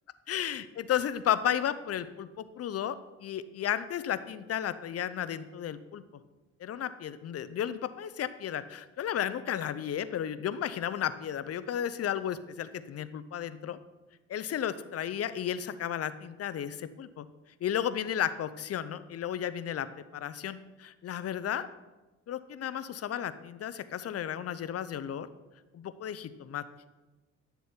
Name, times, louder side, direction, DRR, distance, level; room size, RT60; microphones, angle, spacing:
voice 1, 0.3-3.0 3.2-6.0 6.6-13.8 14.3-17.3 17.6-19.9 20.1-21.7 22.3-25.3 25.7-26.6, left 10 dB, 55° left, 13 dB, 0.6 m, -33 dB
10.5 x 6.9 x 4.4 m, 1.1 s
cardioid pair, 90°, 30 cm